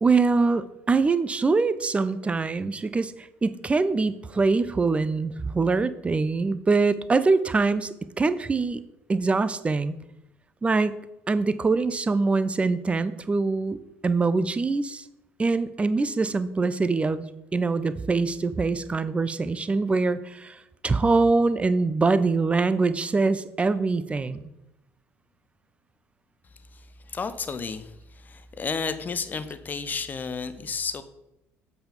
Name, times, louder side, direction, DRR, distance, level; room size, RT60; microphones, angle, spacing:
voice 1, 0.0-8.8 9.1-10.0 10.6-11.0 11.3-13.8 14.0-15.0 15.4-17.3 17.5-24.4, right 3 dB, 20° right, 14 dB, 0.5 m, -24 dB
voice 2, 26.7-31.0, left 5 dB, 25° left, 12 dB, 0.6 m, -32 dB
7.9 x 4.2 x 5.0 m, 0.89 s
figure-of-eight pair, 55°, 7 cm